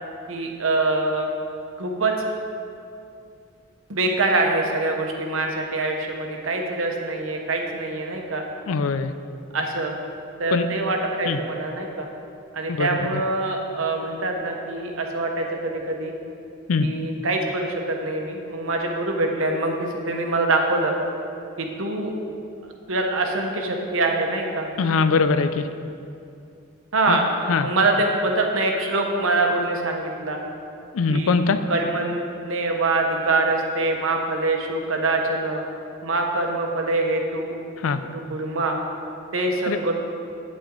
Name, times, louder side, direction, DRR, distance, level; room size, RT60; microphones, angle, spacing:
voice 1, 0.3-1.3 1.8-2.1 3.9-8.4 9.5-10.0 10.4-12.1 12.5-16.1 16.8-20.9 21.6-22.1 22.9-24.7 26.9-27.2 27.6-30.4 31.1-31.3 31.7-35.6 36.0-37.5 38.0-38.8 39.3-39.9, right 2 dB, 75° right, 2 dB, 1.1 m, -24 dB
voice 2, 8.7-9.1 10.5-10.7 11.3-11.4 12.7-12.9 16.7-16.9 24.8-25.7 27.1-27.2 27.5-27.7 30.9-31.6 37.8-38.0 39.7-39.8, left 4 dB, 80° left, 11 dB, 0.4 m, -21 dB
8.7 x 8.5 x 3.8 m, 2.6 s
head